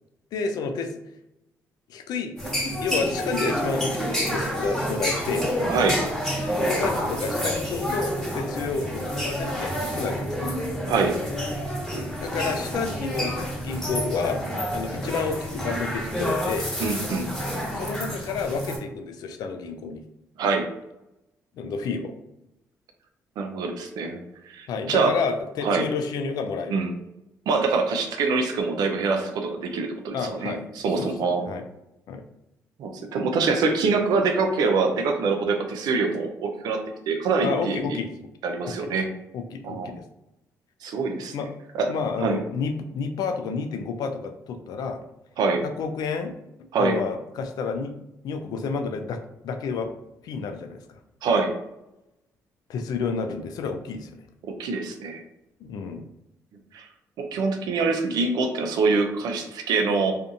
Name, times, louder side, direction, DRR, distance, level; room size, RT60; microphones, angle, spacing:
voice 1, 0.3-0.9 1.9-2.4 2.8-5.5 6.7-10.5 12.2-14.4 14.7-16.7 17.7-20.0 21.6-22.1 24.7-26.8 30.1-30.6 31.0-31.1 31.5-31.6 32.1-32.2 37.4-38.1 38.7-38.9 39.3-40.0 41.3-41.5 41.9-45.0 45.6-46.3 46.8-47.9 48.2-49.9 50.2-51.0 52.7-54.1 55.6-56.0, left 5 dB, 70° left, 7 dB, 0.4 m, -30 dB
sound 1, 2.4-18.8, equal, 5° left, 1.2 m, -28 dB
voice 2, 5.7-6.0 10.9-11.2 16.8-17.3 20.4-20.7 23.4-24.2 24.5-25.1 25.6-25.9 26.7-26.9 27.5-31.5 32.8-36.8 37.1-38.0 38.4-39.1 39.6-39.9 40.8-41.3 41.7-41.9 42.2-42.4 45.4-45.6 46.7-47.0 51.2-51.5 54.4-55.2 56.7-56.8 57.2-60.1, right 4 dB, 75° right, 4 dB, 0.5 m, -24 dB
2.5 x 2.4 x 2.5 m, 0.89 s
supercardioid pair, 65°, 7 cm